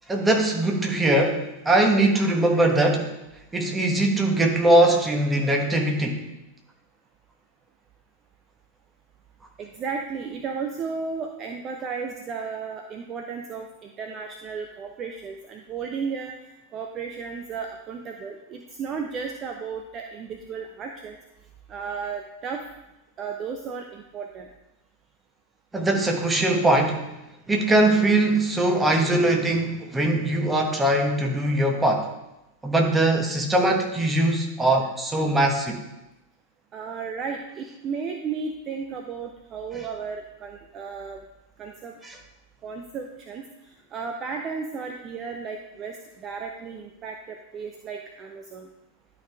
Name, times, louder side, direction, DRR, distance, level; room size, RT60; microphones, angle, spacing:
voice 1, 0.1-3.1 3.5-6.2 25.7-27.1 27.5-32.1 32.6-35.8 39.7-39.8 42.0-42.2, right 1 dB, 10° right, 2 dB, 1.3 m, -21 dB
voice 2, 9.6-16.3 16.7-21.2 21.7-22.6 23.2-24.5 36.7-41.2 41.6-42.0 42.6-48.7, right 5 dB, 30° right, 4 dB, 0.6 m, -34 dB
11.0 x 4.8 x 3.4 m, 0.94 s
figure-of-eight pair, 90°, 0 cm